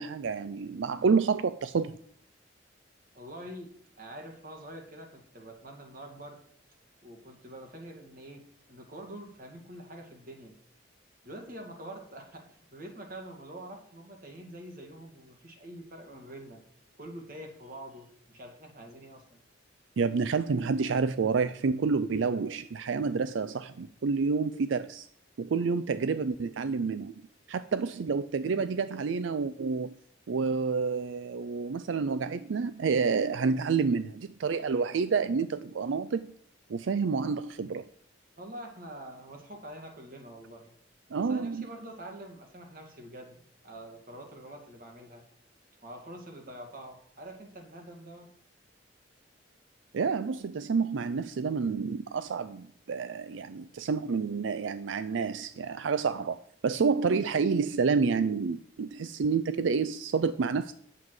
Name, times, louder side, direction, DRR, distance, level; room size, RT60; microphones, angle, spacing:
voice 1, 0.0-2.0 20.0-25.1 25.4-27.1 27.5-30.0 30.3-36.3 36.7-37.9 41.1-41.7 49.9-60.7, right 5 dB, 90° right, 13 dB, 0.4 m, -29 dB
voice 2, 3.1-6.4 7.0-10.6 11.2-16.6 17.0-19.4 38.4-40.7 41.1-45.3 45.8-48.3, right 1 dB, 50° right, 3 dB, 2.2 m, -46 dB
9.4 x 7.7 x 4.8 m, 0.65 s
head